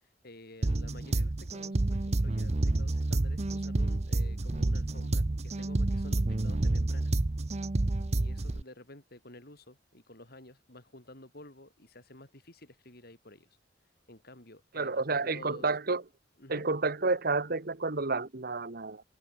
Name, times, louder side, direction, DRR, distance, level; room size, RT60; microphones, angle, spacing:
voice 1, 0.2-7.1 8.2-13.5 14.1-15.7 16.4-16.7, left 1 dB, 55° left, 6.1 m, -51 dB
sound 1, 0.6-8.6, right 2 dB, 35° right, 0.7 m, -29 dB
voice 2, 14.7-16.0 16.5-19.0, right 3 dB, 55° right, 1.3 m, -30 dB
head